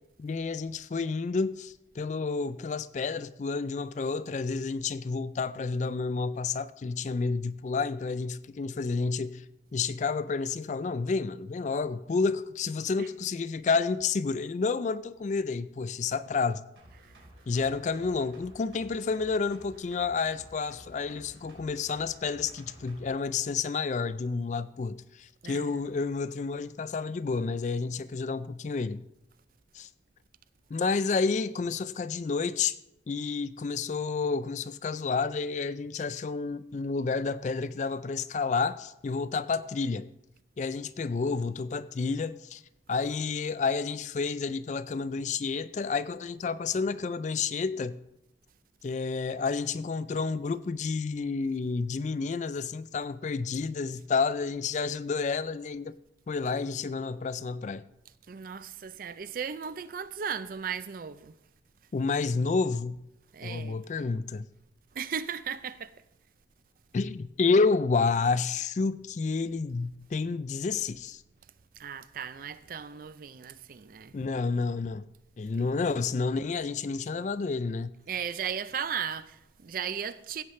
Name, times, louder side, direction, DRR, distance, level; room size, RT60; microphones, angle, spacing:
voice 1, 0.2-9.4 9.7-16.6 17.5-29.0 29.7-29.9 30.7-32.8 33.1-40.1 40.6-42.6 42.9-48.0 48.8-55.9 56.3-57.8 61.9-63.0 63.4-64.5 66.9-71.2 74.1-75.1 75.4-77.9, left 4 dB, 40° left, 0.3 m, -30 dB
sound 1, 16.8-23.1 23.4-23.5, right 1 dB, 75° right, 3.2 m, -53 dB
voice 2, 25.4-25.9 58.3-61.3 63.3-63.8 64.9-66.0 71.8-74.1 75.6-75.8 78.1-80.4, right 7 dB, 50° right, 0.4 m, -36 dB
15.5 x 8.0 x 3.2 m
head